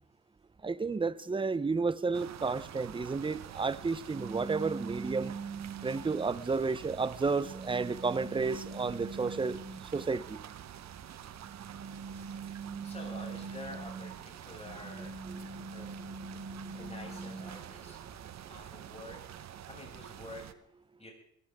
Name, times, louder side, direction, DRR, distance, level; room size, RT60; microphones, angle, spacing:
voice 1, 0.6-5.3 5.8-9.6 9.9-10.4, right 4 dB, 15° right, 16 dB, 0.7 m, -32 dB
sound 1, 2.1-20.5, right 10 dB, 65° right, 1.1 m, -48 dB
sound 2, 4.1-6.3 7.0-10.1 11.2-14.2 14.6-17.6, right 4 dB, 40° right, 4.0 m, -43 dB
voice 2, 12.8-16.0 16.7-18.0 18.5-20.4 21.0-21.1, left 1 dB, 20° left, 0 dB, 7.2 m, -48 dB
21.0 x 16.5 x 3.7 m, 0.73 s
cardioid pair, 90°, 30 cm